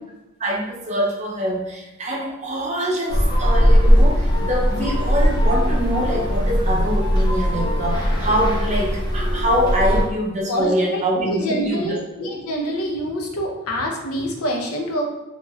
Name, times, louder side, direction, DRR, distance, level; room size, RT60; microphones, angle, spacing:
voice 1, 0.4-12.0 12.2-12.3, equal, 35° right, -2 dB, 0.6 m, -24 dB
sound 1, 3.1-10.0, equal, 20° left, 0.5 m, -19 dB
voice 2, 10.5-15.1, equal, 80° left, 1 dB, 0.6 m, -26 dB
3.0 x 3.0 x 2.3 m, 1.0 s
head